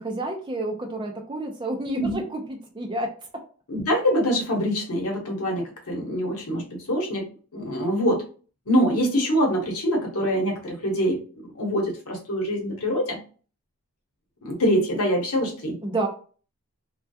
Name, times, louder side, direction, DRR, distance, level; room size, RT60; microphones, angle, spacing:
voice 1, 0.0-3.1 15.8-16.1, right 2 dB, 20° right, 3 dB, 0.4 m, -29 dB
voice 2, 3.7-8.2 8.7-11.2 11.6-13.2 14.4-15.8, equal, 80° left, 1 dB, 0.9 m, -24 dB
2.2 x 2.2 x 2.6 m, 0.39 s
head